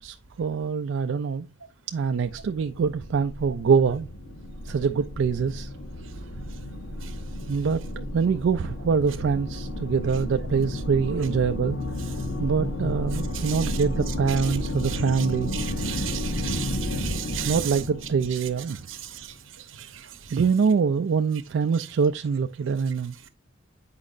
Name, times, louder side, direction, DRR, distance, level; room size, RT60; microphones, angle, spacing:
voice 1, 0.0-1.5 1.9-4.1 4.7-5.7 7.5-11.8 12.4-15.5 17.4-18.9 20.3-23.1, right 6 dB, 75° right, 0.3 m, -24 dB
sound 1, 2.3-19.2, left 1 dB, 85° left, 1.2 m, -32 dB
voice 2, 13.3-13.8 14.8-15.3 15.5-17.7 18.9-19.3 19.7-20.4, right 10 dB, 90° right, 0.9 m, -35 dB
8.2 x 4.7 x 2.5 m
head